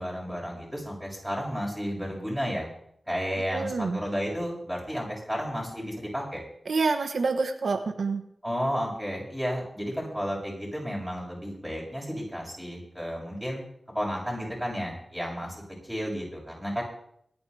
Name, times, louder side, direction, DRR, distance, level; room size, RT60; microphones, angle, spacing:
voice 1, 0.0-2.7 3.1-6.4 8.4-13.6 13.9-16.8, equal, ahead, -4 dB, 7.5 m, -32 dB
voice 2, 3.5-4.0 6.7-8.2, right 4 dB, 80° right, 6 dB, 1.2 m, -27 dB
25.5 x 9.9 x 3.4 m, 0.71 s
wide cardioid pair, 85°, 0 cm